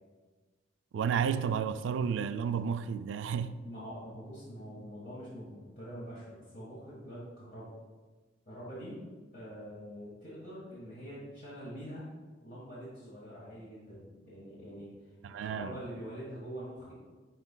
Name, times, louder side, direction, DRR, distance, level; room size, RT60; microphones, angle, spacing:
voice 1, 0.9-3.6 15.2-15.8, right 7 dB, 80° right, 0.3 m, -32 dB
voice 2, 3.6-7.7 8.5-9.0 9.3-12.0 12.4-14.9 15.3-16.9, equal, 50° left, 1.4 m, -44 dB
10.5 x 4.1 x 2.2 m
head